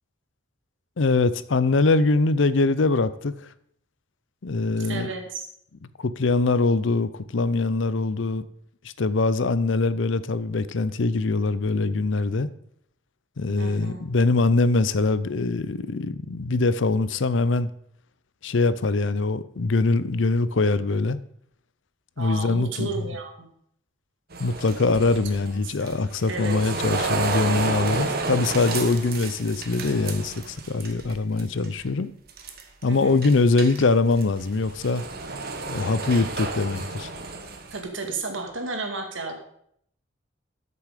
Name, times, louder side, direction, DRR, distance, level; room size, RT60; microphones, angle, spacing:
voice 1, 1.0-3.5 4.4-5.1 6.0-8.4 9.0-12.5 13.4-17.7 18.4-21.2 22.2-22.9 24.4-32.1 32.8-35.0 35.7-37.1, left 3 dB, 70° left, 0.6 m, -23 dB
voice 2, 4.9-5.5 13.6-14.0 22.2-23.5 25.0-25.2 25.6-26.0 26.3-26.6 32.8-33.2 37.7-39.3, right 3 dB, 70° right, 2.1 m, -33 dB
sound 1, 24.3-31.1 31.4-31.8 32.3-32.8 33.2-37.8, right 3 dB, 50° right, 1.4 m, -31 dB
13.0 x 6.9 x 5.0 m
head